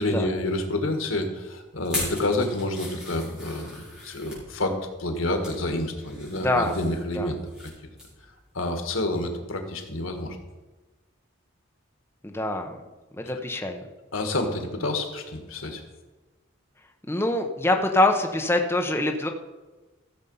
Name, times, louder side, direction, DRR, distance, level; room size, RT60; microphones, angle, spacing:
voice 1, 0.0-7.7 8.5-10.4 13.2-13.3 14.1-15.8, left 1 dB, 90° left, 5 dB, 1.8 m, -28 dB
sound 1, 1.8-4.4 5.0-5.6 6.0-7.7 8.0-8.2 8.6-8.7, left 2 dB, 5° right, 5.0 m, -38 dB
voice 2, 6.3-6.7 7.1-7.3 12.2-12.8 13.2-13.8 17.1-19.3, left 2 dB, 10° left, 3 dB, 0.8 m, -24 dB
14.5 x 7.1 x 5.6 m, 1.2 s
head